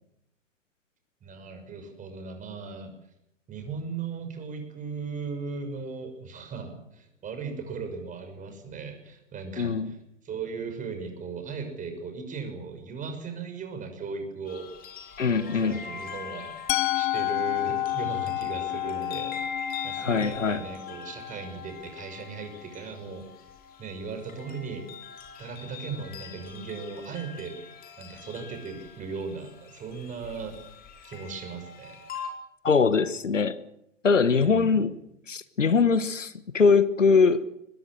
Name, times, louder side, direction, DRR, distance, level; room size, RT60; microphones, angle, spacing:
voice 1, 1.2-2.9 3.5-10.0 10.2-14.7 15.2-16.5 16.9-19.4 19.8-23.2 23.8-24.9 25.4-30.5 31.0-32.0 34.3-34.8, right 5 dB, 20° right, 6 dB, 6.2 m, -37 dB
voice 2, 9.6-9.9 15.2-15.8 20.0-20.6 32.6-33.6 34.0-34.9 35.3-37.4, left 5 dB, 75° left, 16 dB, 1.3 m, -22 dB
sound 1, 14.4-32.3, left 6 dB, 25° left, 5.1 m, -43 dB
Musical instrument, 16.7-22.6, left 15 dB, 40° left, 1.1 m, -31 dB
23.5 x 20.5 x 7.6 m, 0.80 s
figure-of-eight pair, 100°, 38 cm